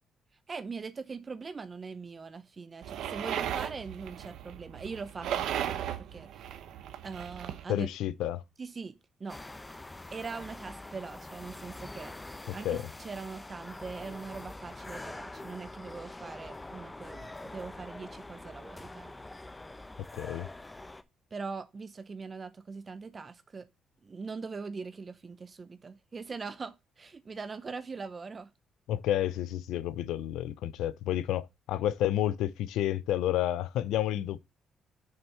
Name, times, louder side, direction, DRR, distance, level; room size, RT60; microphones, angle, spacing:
voice 1, 0.5-6.5 7.0-7.9 8.6-9.4 10.1-12.1 12.5-19.1 21.3-23.7 24.0-28.5, right 4 dB, 35° right, 0.6 m, -42 dB
sound 1, 2.8-7.6, right 10 dB, 80° right, 0.8 m, -36 dB
voice 2, 7.7-8.4 12.5-12.8 20.1-20.5 28.9-34.4, left 12 dB, 90° left, 0.5 m, -30 dB
sound 2, 9.3-21.0, left 2 dB, 15° left, 0.8 m, -45 dB
6.5 x 4.4 x 5.5 m
cardioid pair, 90°, 0 cm